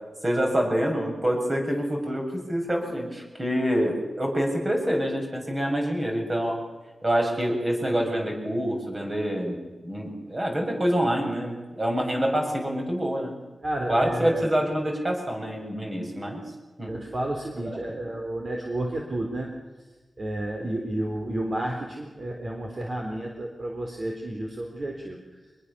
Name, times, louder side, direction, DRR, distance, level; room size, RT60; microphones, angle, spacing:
voice 1, 0.2-6.6 7.0-9.6 9.8-13.3 13.9-16.4 16.8-16.9 17.6-18.0 20.6-20.7, equal, 25° right, 1 dB, 7.3 m, -26 dB
voice 2, 13.6-14.5 16.9-19.5 20.2-25.2, right 1 dB, 40° right, 1 dB, 4.0 m, -31 dB
25.0 x 21.5 x 7.1 m, 1.2 s
wide cardioid pair, 105°, 0 cm